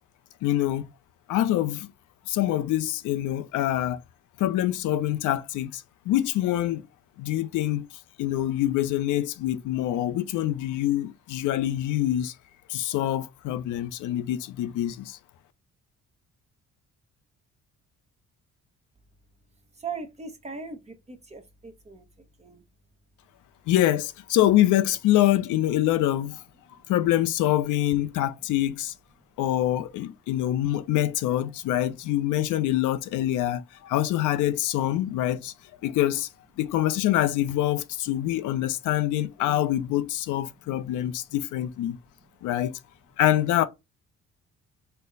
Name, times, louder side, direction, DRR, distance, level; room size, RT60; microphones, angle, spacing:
voice 1, 0.4-0.9 1.3-1.9 2.3-4.0 4.4-6.8 7.2-7.9 8.2-12.3 12.7-15.2 23.7-26.4 26.9-28.9 29.4-35.5 35.8-36.3 36.6-42.0 42.4-42.7 43.2-43.6, left 13 dB, 85° left, 0.5 m, -25 dB
voice 2, 19.7-22.6 42.2-42.3, right 5 dB, 20° right, 1.0 m, -39 dB
4.3 x 2.1 x 3.8 m
cardioid pair, 90°, 30 cm